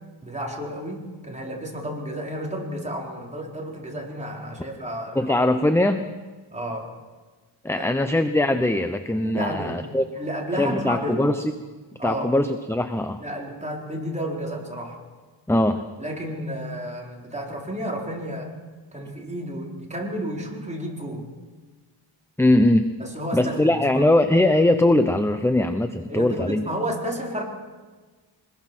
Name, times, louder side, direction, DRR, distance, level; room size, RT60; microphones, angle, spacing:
voice 1, 0.2-5.2 6.5-6.9 7.7-7.9 9.3-9.8 10.1-11.3 12.0-12.3 13.2-15.0 16.0-18.6 18.9-21.3 23.0-24.0 26.1-27.4, right 1 dB, 15° right, -1 dB, 4.5 m, -31 dB
voice 2, 5.1-6.1 7.6-10.0 10.5-11.5 12.0-13.2 15.5-15.8 22.4-22.9 23.3-26.7, left 1 dB, 5° left, 8 dB, 0.8 m, -21 dB
23.5 x 21.0 x 6.2 m, 1.4 s
wide cardioid pair, 120°, 49 cm